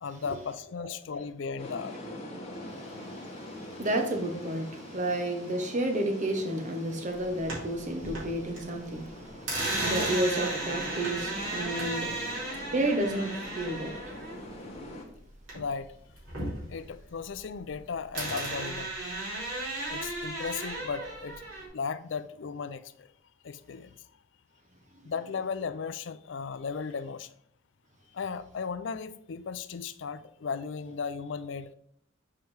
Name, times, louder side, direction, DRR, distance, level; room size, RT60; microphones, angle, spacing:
voice 1, 0.0-2.0 15.5-15.9 16.7-18.9 19.9-21.4 21.7-23.1 23.4-24.0 25.0-27.3 28.1-31.7, left 5 dB, 65° left, 12 dB, 0.4 m, -36 dB
sound 1, 1.6-15.0, left 1 dB, 30° left, 1.5 m, -44 dB
voice 2, 2.6-12.1 12.7-13.9, right 1 dB, 40° right, 4 dB, 0.9 m, -31 dB
sound 2, 7.2-8.6 8.9-15.8 16.1-17.8 18.1-21.7, right 2 dB, 80° right, 2.8 m, -35 dB
7.4 x 4.5 x 3.3 m, 0.70 s
head